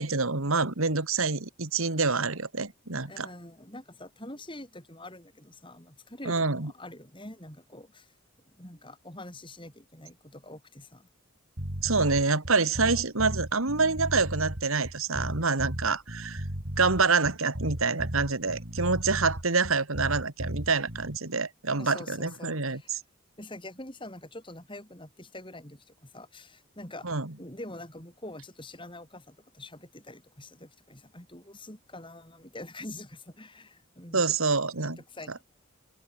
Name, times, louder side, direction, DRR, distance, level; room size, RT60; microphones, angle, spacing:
voice 1, 0.0-3.3 6.3-6.7 11.8-16.4 16.8-22.8 27.0-27.3 34.1-35.0, right 4 dB, 75° right, 2.2 m, -27 dB
voice 2, 3.1-8.1 8.5-11.1 21.7-22.9 23.4-27.1 27.4-34.3 34.8-35.4, left 1 dB, 20° left, 6.7 m, -45 dB
sound 1, 11.6-21.2, equal, 50° right, 4.3 m, -35 dB
head